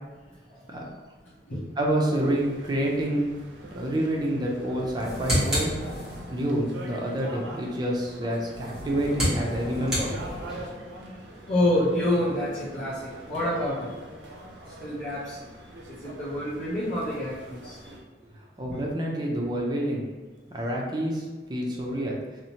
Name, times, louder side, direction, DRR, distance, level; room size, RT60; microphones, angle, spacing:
voice 1, 1.2-1.6 3.7-3.8 6.3-6.4 10.7-14.0 14.7-15.5 15.9-18.0, left 1 dB, 45° left, -9 dB, 0.6 m, -29 dB
voice 2, 1.8-3.3 3.7-5.7 6.3-10.1 18.6-20.1 20.5-22.2, right 1 dB, 25° right, -2 dB, 0.4 m, -28 dB
sound 1, 2.2-18.0, right 1 dB, 85° right, 0.4 m, -44 dB
sound 2, 4.8-6.5 8.5-10.8, equal, 5° right, 1.0 m, -30 dB
2.7 x 2.0 x 2.8 m, 1.3 s
head